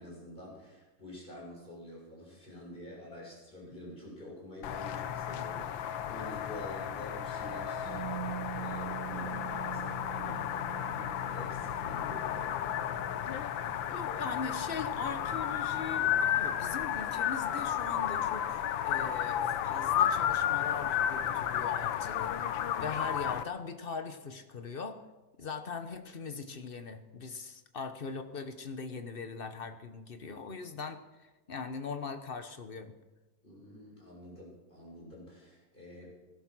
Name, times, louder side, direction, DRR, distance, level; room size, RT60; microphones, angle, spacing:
voice 1, 0.0-12.6 33.4-36.1, left 1 dB, 25° left, -4 dB, 6.8 m, -47 dB
sound 1, 4.6-23.4, left 10 dB, 80° left, 1.5 m, -33 dB
Musical instrument, 7.8-15.7 16.0-16.2, right 10 dB, 55° right, 6.0 m, -45 dB
voice 2, 13.9-22.3 22.8-25.0 25.4-32.9, left 5 dB, 40° left, 9 dB, 0.8 m, -40 dB
18.0 x 12.0 x 6.1 m, 1.1 s
omnidirectional pair, 2.1 m